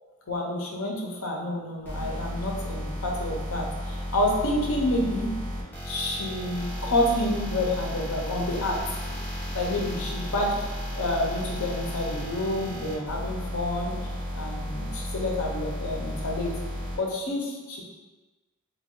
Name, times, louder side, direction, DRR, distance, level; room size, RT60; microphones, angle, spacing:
voice 1, 0.3-5.3 5.8-8.8 9.1-9.2 9.5-10.5 10.9-14.0 14.3-16.5 17.0-17.8, left 1 dB, 75° left, -1 dB, 0.7 m, -29 dB
sound 1, 1.8-16.9, left 1 dB, 10° left, 1.0 m, -33 dB
3.4 x 2.3 x 3.7 m, 1.2 s
head